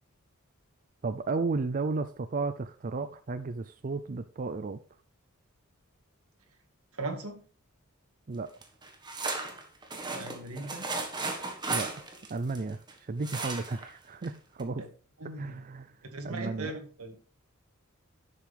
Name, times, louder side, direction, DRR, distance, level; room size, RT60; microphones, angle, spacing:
voice 1, 1.0-4.8 8.3-8.5 11.7-14.8 15.4-16.7, right 3 dB, 40° right, 0.4 m, -34 dB
voice 2, 6.9-7.4 10.1-10.9 14.8-14.9 15.2-15.6 16.1-17.2, right 2 dB, 85° right, 2.0 m, -38 dB
sound 1, 8.6-12.9 13.2-13.9 14.2-14.3 14.6-14.7, right 3 dB, 20° right, 1.5 m, -35 dB
11.0 x 7.5 x 3.4 m
head